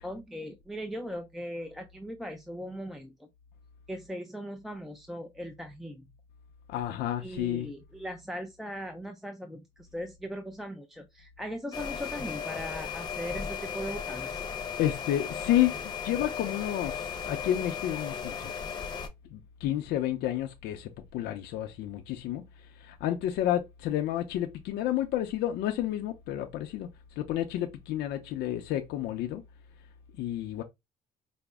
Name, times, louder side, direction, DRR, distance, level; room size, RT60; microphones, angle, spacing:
voice 1, 0.0-3.3 3.9-6.0 7.2-14.4, equal, ahead, 0.4 m, -39 dB
voice 2, 6.7-7.7 14.8-18.5 19.3-26.9 27.2-29.4 30.2-30.6, left 12 dB, 80° left, 0.5 m, -30 dB
sound 1, 11.7-19.1, left 7 dB, 25° left, 0.8 m, -36 dB
5.0 x 2.0 x 3.4 m
cardioid pair, 110°, 17 cm